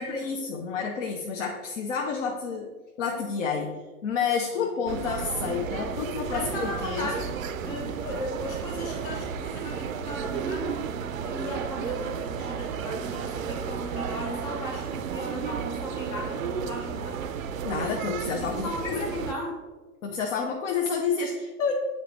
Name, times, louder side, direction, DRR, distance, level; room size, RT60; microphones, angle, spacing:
voice 1, 0.0-2.7 3.0-7.0 17.6-19.1 20.0-21.7, left 5 dB, 55° left, 1 dB, 0.9 m, -29 dB
sound 1, 4.9-19.3, right 7 dB, 60° right, 0.6 m, -33 dB
voice 2, 6.3-10.9 11.2-17.2 18.4-19.5, left 1 dB, 10° left, 1 dB, 0.3 m, -37 dB
8.7 x 4.2 x 3.2 m, 1.3 s
figure-of-eight pair, 105°, 45 cm